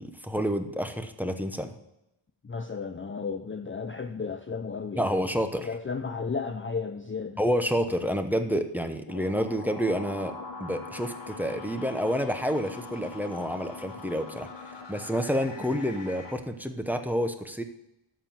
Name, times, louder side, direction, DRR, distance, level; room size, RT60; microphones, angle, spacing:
voice 1, 0.0-1.7 5.0-5.7 7.4-17.6, equal, 5° right, 6 dB, 0.8 m, -29 dB
voice 2, 2.4-5.3 5.6-7.4, left 5 dB, 25° left, 7 dB, 0.5 m, -34 dB
sound 1, 9.1-16.3, left 3 dB, 60° left, 1.6 m, -42 dB
12.5 x 4.5 x 7.5 m, 0.87 s
wide cardioid pair, 90°, 49 cm